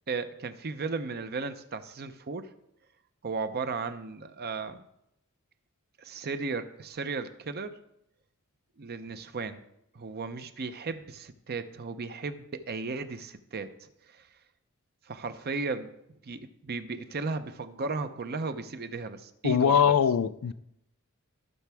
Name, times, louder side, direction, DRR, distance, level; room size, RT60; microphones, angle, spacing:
voice 1, 0.1-2.5 3.2-4.8 6.0-7.8 8.8-9.6 9.9-14.3 15.1-15.9 16.2-20.0, right 4 dB, 45° right, 10 dB, 0.7 m, -35 dB
voice 2, 19.4-20.5, left 7 dB, 80° left, 15 dB, 0.4 m, -22 dB
16.0 x 5.9 x 3.5 m, 0.80 s
head